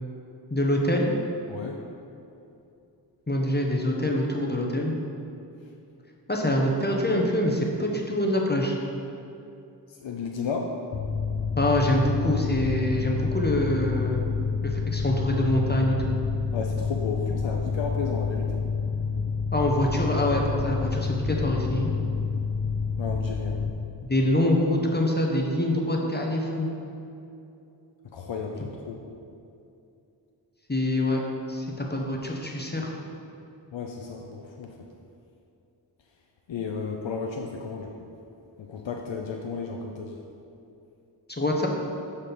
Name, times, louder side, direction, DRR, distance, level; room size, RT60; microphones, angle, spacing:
voice 1, 0.5-1.1 3.3-4.9 6.3-8.7 11.6-14.2 14.6-16.1 19.5-21.9 24.0-26.7 30.7-31.2 31.5-32.9 41.3-41.7, left 1 dB, 25° left, 0 dB, 0.8 m, -25 dB
voice 2, 1.5-1.8 9.9-10.7 16.5-18.6 23.0-23.6 28.1-29.0 33.7-34.7 36.5-37.9 38.6-40.2, left 5 dB, 85° left, 1 dB, 0.6 m, -33 dB
Mechanical fan, 10.9-23.7, left 5 dB, 50° left, 0.7 m, -28 dB
6.2 x 4.3 x 5.2 m, 2.7 s
wide cardioid pair, 50°, 44 cm